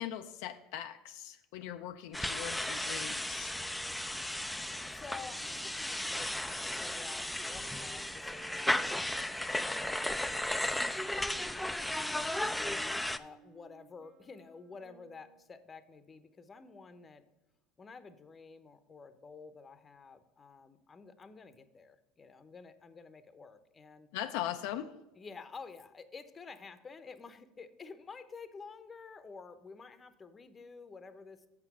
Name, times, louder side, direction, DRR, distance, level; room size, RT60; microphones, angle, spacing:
voice 1, 0.0-3.6 24.1-24.9, left 11 dB, 75° left, 7 dB, 0.5 m, -40 dB
sound 1, 2.1-13.2, left 1 dB, 5° left, 0.5 m, -35 dB
sound 2, 3.4-9.2 9.9-15.6, right 4 dB, 55° right, 1.5 m, -58 dB
voice 2, 4.9-8.8 9.1-17.2 17.8-24.1 25.2-31.5, left 5 dB, 25° left, 12 dB, 0.8 m, -51 dB
7.5 x 5.9 x 6.1 m, 1.0 s
supercardioid pair, 90°, 0 cm